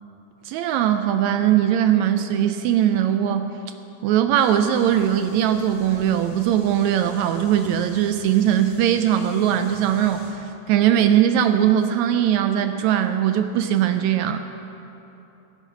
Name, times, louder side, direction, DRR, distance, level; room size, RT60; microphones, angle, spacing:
voice 1, 0.4-3.5 4.0-14.4, right 10 dB, 85° right, 8 dB, 1.6 m, -20 dB
sound 1, 4.3-10.3, left 1 dB, 70° left, 3.8 m, -46 dB
16.5 x 9.9 x 5.9 m, 2.9 s
omnidirectional pair, 3.7 m